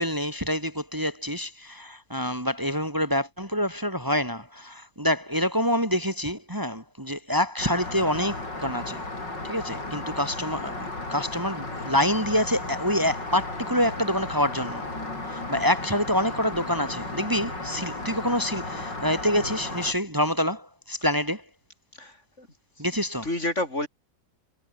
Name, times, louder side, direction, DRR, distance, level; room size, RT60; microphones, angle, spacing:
voice 1, 0.0-9.0 9.4-14.9 15.3-21.4 22.8-23.3, equal, 10° right, 4.7 m, -27 dB
Rain, 7.6-19.9, left 2 dB, 80° left, 7.7 m, -34 dB
voice 2, 22.0-22.5 22.8-22.9 23.2-23.9, left 1 dB, 40° left, 6.5 m, -30 dB
omnidirectional pair, 1.9 m